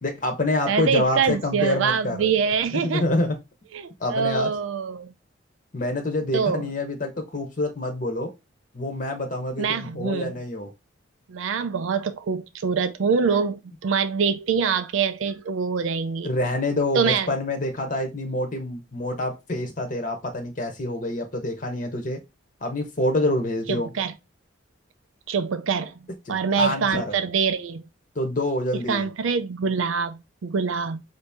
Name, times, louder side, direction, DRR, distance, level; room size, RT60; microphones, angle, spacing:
voice 1, 0.0-2.3 2.7-3.4 4.0-4.5 5.7-8.3 8.7-10.7 16.2-22.2 22.6-23.9 26.3-27.1 28.1-29.1, left 1 dB, 40° left, 0.8 m, -26 dB
voice 2, 0.7-3.1 3.7-5.1 6.3-6.7 9.6-10.4 11.3-16.3 16.9-17.3 23.7-24.1 25.3-25.9 26.3-27.8 28.9-31.0, right 6 dB, 85° right, 0.4 m, -25 dB
5.2 x 2.7 x 3.4 m
head